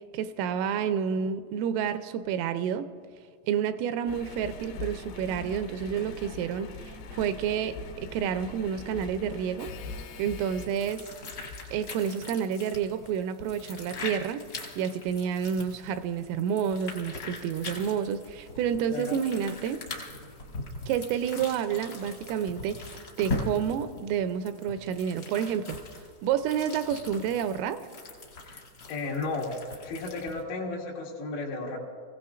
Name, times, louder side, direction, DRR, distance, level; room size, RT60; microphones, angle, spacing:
voice 1, 0.1-2.9 3.5-7.8 8.1-9.7 10.2-11.1 11.7-14.4 14.8-19.8 20.9-25.8 26.2-27.8, right 8 dB, 85° right, 10 dB, 3.1 m, -29 dB
Engine, 4.1-11.9 12.5-12.6, left 2 dB, 70° left, 2.7 m, -42 dB
sound 1, 10.5-30.4, left 2 dB, 50° left, 1.1 m, -41 dB
voice 2, 18.9-19.2 28.4-28.6 28.9-29.5 29.8-31.8, left 3 dB, 90° left, -3 dB, 5.1 m, -34 dB
27.0 x 16.5 x 2.5 m, 2.1 s
omnidirectional pair, 5.9 m